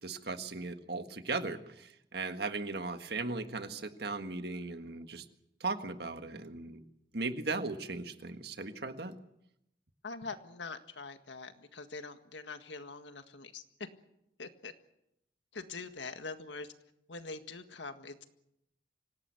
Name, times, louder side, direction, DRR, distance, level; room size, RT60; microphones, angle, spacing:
voice 1, 0.0-5.2 5.6-6.8 7.1-9.1, right 3 dB, 60° right, 8 dB, 1.7 m, -37 dB
voice 2, 10.0-13.6 14.4-14.7 15.5-16.7 17.1-18.3, left 4 dB, 80° left, 8 dB, 1.8 m, -44 dB
25.5 x 18.0 x 8.4 m, 0.83 s
head